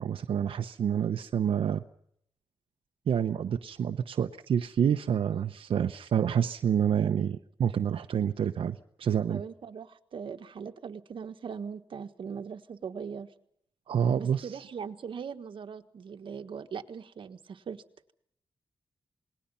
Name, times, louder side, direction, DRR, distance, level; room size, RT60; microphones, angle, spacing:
voice 1, 0.0-1.8 3.1-9.4 13.9-14.5, right 8 dB, 90° right, 7 dB, 0.8 m, -28 dB
voice 2, 9.3-13.3 14.2-17.8, right 6 dB, 70° right, 8 dB, 1.5 m, -40 dB
28.0 x 20.5 x 5.6 m, 0.71 s
wide cardioid pair, 145°, 9 cm